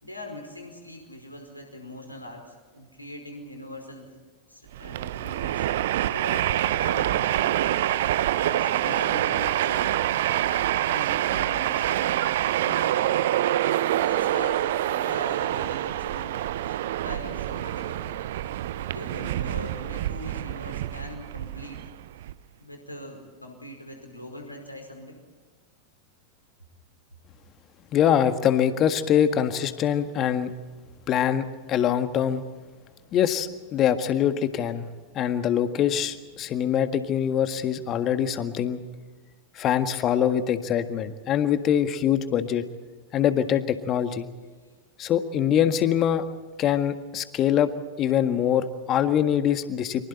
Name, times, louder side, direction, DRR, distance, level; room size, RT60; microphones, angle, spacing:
voice 1, 0.0-4.1 4.5-7.5 8.4-10.0 10.5-12.3 12.6-13.2 13.9-16.4 16.6-18.2 18.9-21.8 22.6-25.2, left 1 dB, 85° left, 3 dB, 5.1 m, -41 dB
Train, 4.7-22.3, right 13 dB, 55° right, 0.7 m, -26 dB
voice 2, 27.9-30.5 31.1-32.4 33.1-34.9 35.1-38.8 39.6-42.6 43.1-44.3 45.0-46.2 46.6-47.7 48.0-50.1, left 9 dB, 30° left, 9 dB, 1.7 m, -24 dB
30.0 x 24.5 x 4.3 m, 1.4 s
figure-of-eight pair, 90°, 0 cm